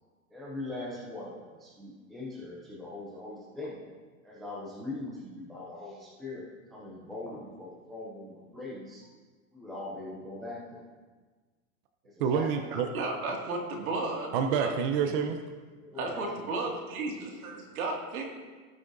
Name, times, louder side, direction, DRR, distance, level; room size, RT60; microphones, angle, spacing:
voice 1, 0.3-3.8 4.2-9.1 9.5-10.8 12.0-12.5 15.8-16.3, left 2 dB, ahead, -6 dB, 0.3 m, -41 dB
voice 2, 12.2-12.9 14.3-15.4, right 7 dB, 40° right, 6 dB, 0.6 m, -27 dB
voice 3, 12.9-14.7 15.9-18.2, right 3 dB, 80° right, 1 dB, 2.2 m, -34 dB
17.0 x 6.1 x 2.6 m, 1.4 s
supercardioid pair, 155°, 42 cm